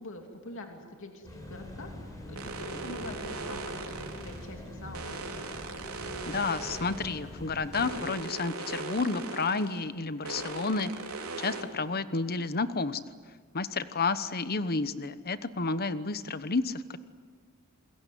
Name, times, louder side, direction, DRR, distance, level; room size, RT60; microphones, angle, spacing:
voice 1, 0.0-2.0 2.3-5.4, left 1 dB, 65° left, 3 dB, 2.9 m, -44 dB
sound 1, 1.2-8.0, left 1 dB, 15° left, 5.9 m, -44 dB
sound 2, 2.4-4.5 4.9-7.2 7.7-9.8 10.2-11.6, right 3 dB, 80° right, 3.7 m, -39 dB
voice 2, 6.3-10.9 11.4-13.0 13.5-17.0, left 4 dB, 45° left, 13 dB, 1.1 m, -31 dB
28.5 x 22.0 x 9.4 m, 1.5 s
head